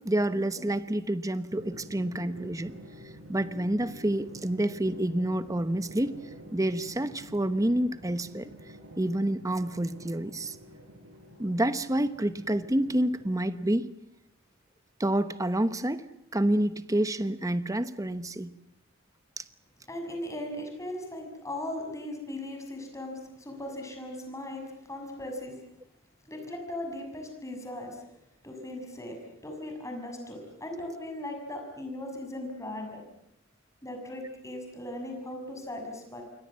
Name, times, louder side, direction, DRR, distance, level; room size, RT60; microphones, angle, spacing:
voice 1, 0.0-2.7 3.3-6.2 6.5-8.5 9.0-10.6 11.4-13.9 15.0-16.0 16.3-18.5 19.4-19.5, right 1 dB, 15° right, 12 dB, 1.0 m, -28 dB
Drum, 1.5-13.9, right 1 dB, 85° right, 6.9 m, -48 dB
voice 2, 19.9-25.6 26.3-28.0 28.4-29.2 29.4-33.0 33.8-36.2, left 1 dB, 15° left, 3 dB, 6.5 m, -38 dB
28.0 x 23.5 x 7.5 m, 0.80 s
head